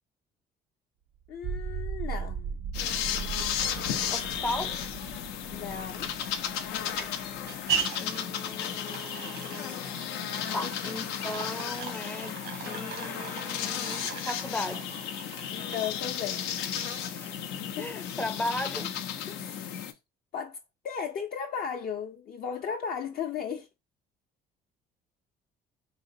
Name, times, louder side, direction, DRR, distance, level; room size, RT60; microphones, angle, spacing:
voice 1, 1.3-2.8 5.5-6.1 10.6-10.9 15.5-16.5 17.8-18.0 19.3-19.9 20.3-20.6 20.8-23.7, left 7 dB, 55° left, 0.6 m, -36 dB
sound 1, 1.3-7.8, right 6 dB, 55° right, 0.4 m, -38 dB
sound 2, 2.7-19.9, left 9 dB, 90° left, 0.6 m, -34 dB
voice 2, 4.1-4.8 8.0-10.0 10.5-15.0 17.0-17.4 17.8-18.9, left 2 dB, 10° left, 0.5 m, -37 dB
sound 3, 6.1-17.4, right 6 dB, 90° right, 1.3 m, -39 dB
4.1 x 2.8 x 2.7 m
cardioid pair, 110°, 17 cm